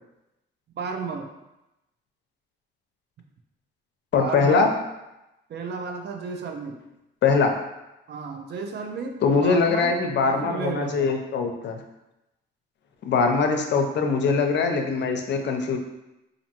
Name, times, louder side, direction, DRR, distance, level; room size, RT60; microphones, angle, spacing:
voice 1, 0.8-1.3 4.1-4.7 5.5-6.8 8.1-11.1, right 5 dB, 60° right, 4 dB, 0.6 m, -33 dB
voice 2, 4.1-4.7 7.2-7.5 9.2-11.8 13.0-15.8, left 4 dB, 65° left, 4 dB, 0.6 m, -22 dB
4.2 x 2.6 x 2.9 m, 0.93 s
cardioid pair, 90°, 20 cm